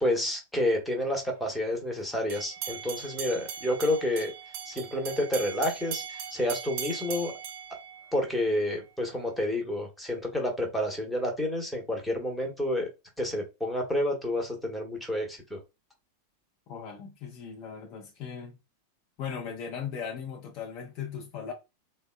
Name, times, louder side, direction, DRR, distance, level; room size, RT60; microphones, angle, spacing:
voice 1, 0.0-4.3 4.7-7.3 8.1-12.9 13.2-15.6, left 1 dB, ahead, 1.0 m, -29 dB
sound 1, 2.3-8.5, right 8 dB, 50° right, 0.5 m, -39 dB
voice 2, 16.7-18.6 19.2-21.5, left 7 dB, 40° left, 0.6 m, -38 dB
3.5 x 2.1 x 2.2 m
figure-of-eight pair, 90°, 0 cm